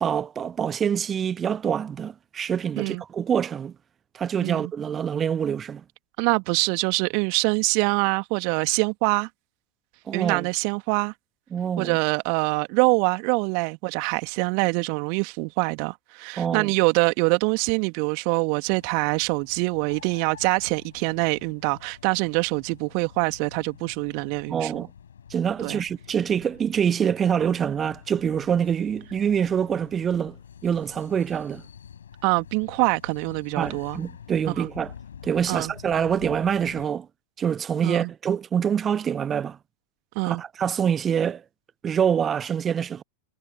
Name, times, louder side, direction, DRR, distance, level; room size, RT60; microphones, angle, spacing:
voice 1, 0.0-3.7 4.1-5.8 10.1-10.5 11.5-12.0 16.4-16.7 24.5-24.9 25.3-30.4 30.6-31.6 33.6-34.9 35.2-37.1 37.4-39.6 40.2-41.4 41.8-43.0, right 8 dB, 25° right, 0.9 m, -25 dB
voice 2, 4.4-4.7 6.2-9.3 10.1-11.1 11.8-24.9 25.6-25.8 32.2-34.0 34.6-34.7 35.5-35.7 37.8-38.1 40.1-40.4, right 40 dB or more, 45° right, 2.6 m, -24 dB
sound 1, 18.7-36.9, left 8 dB, 65° left, 6.5 m, -47 dB
figure-of-eight pair, 90°, 0 cm